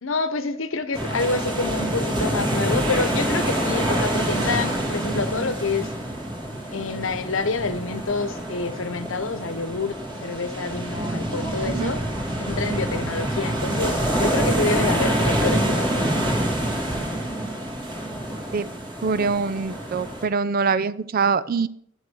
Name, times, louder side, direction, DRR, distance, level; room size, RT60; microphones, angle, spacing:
voice 1, 0.0-5.9 6.7-10.0 10.2-12.0 12.4-16.4, left 3 dB, 85° left, 11 dB, 1.0 m, -27 dB
sound 1, 0.9-20.3, right 1 dB, 25° right, 2.1 m, -26 dB
voice 2, 11.6-12.0 18.5-18.7 19.0-21.7, right 5 dB, 45° right, 16 dB, 0.5 m, -24 dB
11.0 x 6.3 x 6.3 m, 0.68 s
head